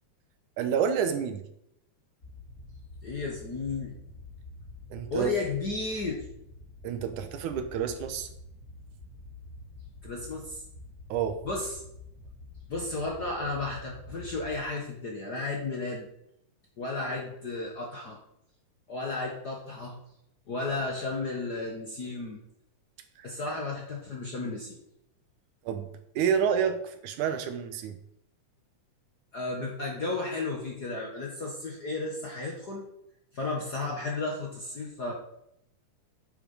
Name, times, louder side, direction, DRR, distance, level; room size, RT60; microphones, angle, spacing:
voice 1, 0.6-1.4 4.9-5.3 6.8-8.3 11.1-11.4 23.2-23.3 25.7-25.9 26.2-28.0, right 7 dB, 80° right, 9 dB, 2.4 m, -29 dB
sound 1, 2.2-14.6, left 2 dB, 30° left, 2.9 m, -47 dB
voice 2, 3.0-4.0 5.1-6.2 10.0-10.6 11.4-11.8 12.7-16.0 16.8-18.2 18.9-20.0 20.5-22.4 23.2-24.8 29.3-32.9 33.3-35.1, left 3 dB, 50° left, 0 dB, 1.3 m, -33 dB
9.3 x 7.2 x 5.4 m, 0.78 s
omnidirectional pair, 3.5 m